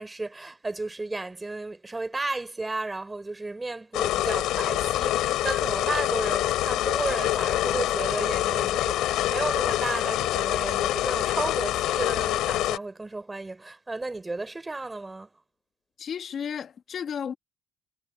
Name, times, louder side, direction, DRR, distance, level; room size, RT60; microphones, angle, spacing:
voice 1, 0.0-15.3, right 2 dB, 15° right, 4.4 m, -33 dB
sound 1, 3.9-12.8, left 14 dB, 75° left, 3.1 m, -26 dB
voice 2, 16.0-17.4, left 7 dB, 50° left, 1.8 m, -33 dB
cardioid pair, 95°, 0 cm